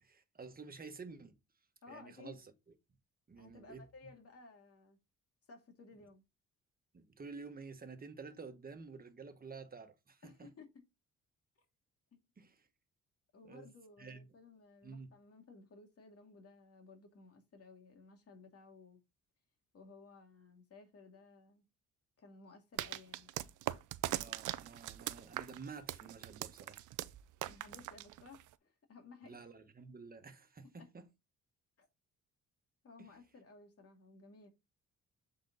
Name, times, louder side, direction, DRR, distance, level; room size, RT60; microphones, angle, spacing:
voice 1, 0.0-1.4 1.9-2.5 3.3-3.8 6.9-10.5 12.4-12.6 13.5-13.7 14.0-14.3 14.8-15.1 24.1-26.8 29.2-31.1 33.0-33.1, right 4 dB, 30° right, 1.4 m, -50 dB
voice 2, 1.8-2.4 3.4-5.0 5.5-6.2 10.2-10.7 13.3-19.0 19.7-21.6 22.2-23.3 27.4-29.5 30.7-30.9 31.8-31.9 32.8-34.5, left 4 dB, 50° left, 2.5 m, -57 dB
sound 1, 22.8-28.5, right 15 dB, 80° right, 0.6 m, -41 dB
7.6 x 4.2 x 4.0 m
cardioid pair, 90°, 30 cm